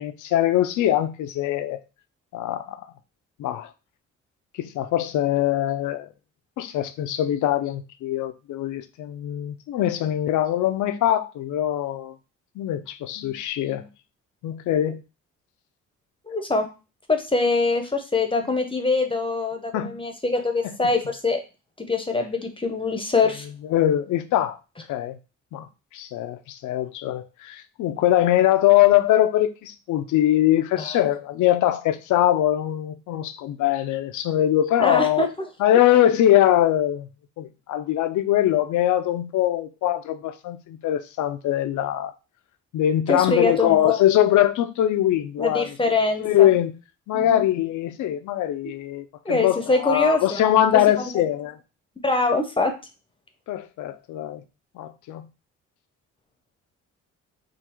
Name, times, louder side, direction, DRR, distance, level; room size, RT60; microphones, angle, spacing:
voice 1, 0.0-1.8 2.3-2.8 3.4-3.7 4.6-6.1 6.6-12.1 12.6-13.9 14.4-15.0 19.7-19.9 23.7-24.6 24.9-25.2 25.5-25.7 25.9-35.3 35.6-37.1 37.4-42.1 42.7-45.7 46.2-46.7 47.1-51.6 53.5-54.4 54.8-55.3, left 12 dB, 75° left, 0.5 m, -22 dB
voice 2, 16.3-16.7 17.1-21.4 21.8-23.5 30.8-31.0 34.8-35.3 43.1-44.0 45.4-46.5 47.1-47.4 49.2-50.5 52.0-52.7, left 3 dB, 15° left, 0.7 m, -23 dB
3.8 x 2.3 x 4.4 m
cardioid pair, 90°, 30 cm